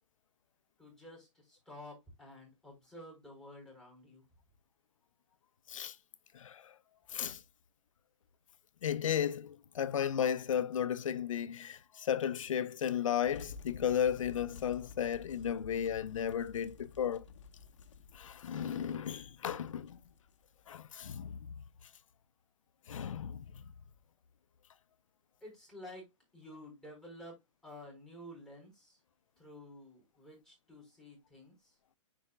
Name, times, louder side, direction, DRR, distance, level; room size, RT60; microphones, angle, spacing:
voice 1, 0.8-4.2 25.4-26.1 26.3-29.0 29.4-31.7, left 1 dB, 5° left, 4.5 m, -51 dB
voice 2, 6.3-6.7 7.1-7.4 8.8-17.2 18.1-20.0 20.7-21.5 22.9-23.5, left 9 dB, 90° left, 0.7 m, -34 dB
sound 1, 13.3-20.9, left 5 dB, 70° left, 1.0 m, -52 dB
9.9 x 4.9 x 2.2 m
hypercardioid pair, 145°, 16 cm